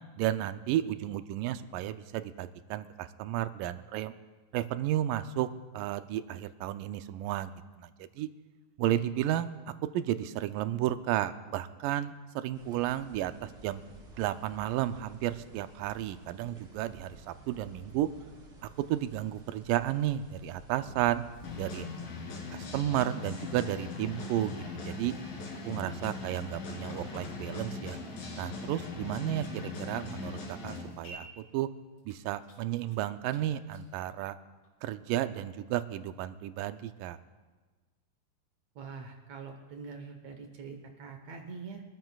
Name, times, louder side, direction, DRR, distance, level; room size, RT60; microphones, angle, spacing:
voice 1, 0.2-4.1 4.5-5.5 5.7-8.3 8.8-9.5 9.9-13.8 14.1-18.1 18.6-21.2 21.6-21.9 22.5-25.1 25.7-28.0 28.4-31.7 32.1-34.4 34.8-37.2, right 13 dB, 80° right, 11 dB, 2.1 m, -33 dB
sound 1, 12.5-21.7, right 2 dB, 40° right, 2.7 m, -52 dB
sound 2, 21.4-31.1, left 4 dB, 80° left, 3.9 m, -40 dB
sound 3, 24.2-25.5 25.8-25.9 26.1-26.2 27.2-27.3 28.2-30.5 31.0-31.1 31.5-31.6 32.0-33.0 33.3-33.4 33.7-33.9 34.6-34.7, left 3 dB, 55° left, 4.6 m, -55 dB
voice 2, 38.8-41.8, right 5 dB, 65° right, 5 dB, 2.0 m, -44 dB
25.0 x 13.5 x 2.3 m, 1.3 s
omnidirectional pair, 4.0 m